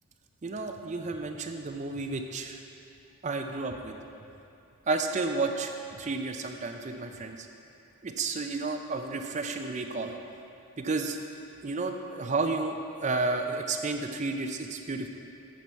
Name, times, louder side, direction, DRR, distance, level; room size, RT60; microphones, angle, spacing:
voice 1, 0.4-2.6 3.2-3.9 4.9-5.7 6.0-7.5 8.0-10.2 10.8-11.2 11.6-12.8 13.0-15.1, right 3 dB, 35° right, 5 dB, 0.4 m, -31 dB
9.2 x 5.5 x 4.5 m, 2.7 s
head